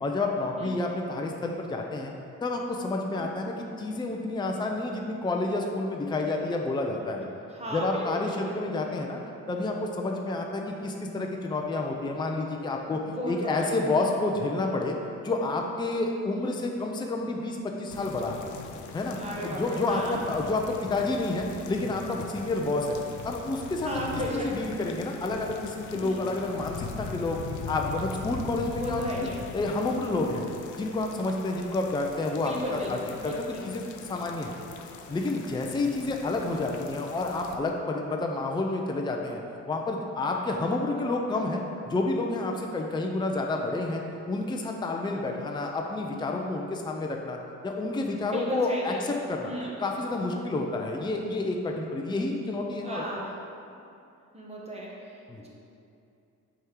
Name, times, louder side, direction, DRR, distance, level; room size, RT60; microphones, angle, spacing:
voice 1, 0.0-2.1 2.4-7.3 7.7-9.2 9.5-13.0 13.3-15.0 15.2-18.4 18.9-19.2 19.4-23.0 23.2-23.9 24.1-27.4 27.7-30.4 30.7-32.5 32.9-33.0 33.2-33.8 34.1-34.5 35.1-39.4 39.7-41.6 41.9-44.0 44.3-47.4 47.6-49.5 49.8-53.0 55.3-55.4, left 2 dB, 15° left, 1 dB, 0.5 m, -29 dB
voice 2, 7.5-8.6 12.9-14.1 19.2-20.2 23.8-24.8 25.9-26.2 28.5-29.4 32.3-33.7 48.3-49.0 49.4-49.7 52.8-53.3 54.3-55.5, equal, 20° right, -4 dB, 1.4 m, -35 dB
sound 1, 17.9-37.6, left 5 dB, 75° left, 0.5 m, -42 dB
6.3 x 3.7 x 4.6 m, 2.6 s
cardioid pair, 90°, 30 cm